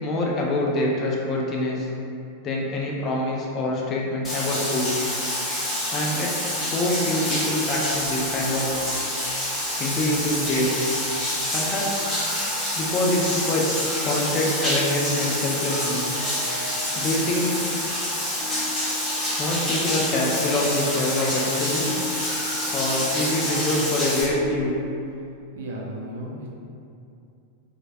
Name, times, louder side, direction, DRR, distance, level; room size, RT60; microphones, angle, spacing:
voice 1, 0.0-1.9 2.4-4.9 5.9-8.7 9.5-10.7 11.5-12.1 12.7-16.1 16.9-17.6 19.4-22.0 22.7-24.7, left 1 dB, 30° left, -3 dB, 0.4 m, -25 dB
Bathtub (filling or washing), 4.2-24.2, left 1 dB, 15° left, 0.9 m, -27 dB
sound 1, 7.6-24.7, left 1 dB, 85° left, 0.6 m, -40 dB
voice 2, 25.5-26.5, right 1 dB, 60° right, -2 dB, 0.4 m, -34 dB
3.0 x 2.3 x 2.5 m, 2.6 s
figure-of-eight pair, 90°, 0 cm